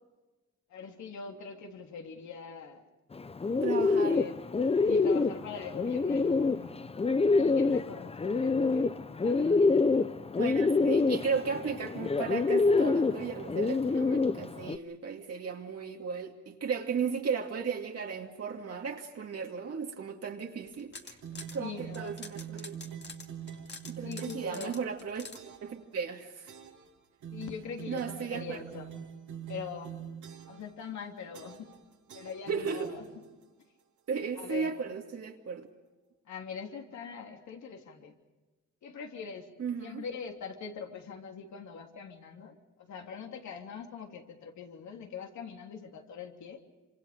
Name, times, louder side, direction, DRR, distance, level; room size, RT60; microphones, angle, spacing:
voice 1, 0.7-2.8 3.7-4.3 4.8-6.9 7.3-9.6 21.6-22.2 24.0-24.8 27.3-29.0 29.5-30.0 30.5-31.7 32.1-33.0 34.4-35.0 36.3-38.1 38.8-39.5 39.8-46.6, left 6 dB, 70° left, 3 dB, 3.2 m, -43 dB
Bird, 3.1-14.8, left 4 dB, 20° left, 0.7 m, -27 dB
voice 2, 3.6-4.2 10.4-21.2 21.5-22.7 24.0-25.3 25.6-26.5 27.9-28.6 32.5-32.9 34.1-35.7 39.6-40.0, right 6 dB, 55° right, 1 dB, 2.4 m, -35 dB
sound 1, 20.7-21.6 21.9-25.4, left 4 dB, 35° left, 2.4 m, -46 dB
sound 2, 21.2-24.6 25.3-25.7 26.5-26.9 27.2-30.7 31.3-31.8 32.1-33.4, right 8 dB, 75° right, 3.3 m, -44 dB
26.5 x 26.0 x 5.1 m, 1.2 s
cardioid pair, 90°, 30 cm